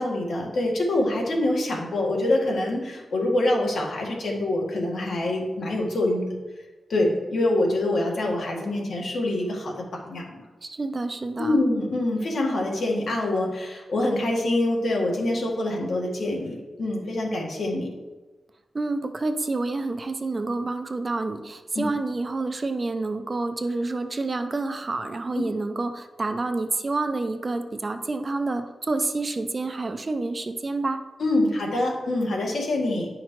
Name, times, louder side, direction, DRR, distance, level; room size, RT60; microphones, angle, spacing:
voice 1, 0.0-6.4 6.9-10.3 11.4-17.9 21.8-21.9 31.2-33.1, left 1 dB, 70° left, 0 dB, 1.7 m, -25 dB
voice 2, 10.6-11.6 18.7-31.0, right 3 dB, 30° right, 8 dB, 0.5 m, -28 dB
9.6 x 5.8 x 3.1 m, 1.2 s
wide cardioid pair, 135°, 0 cm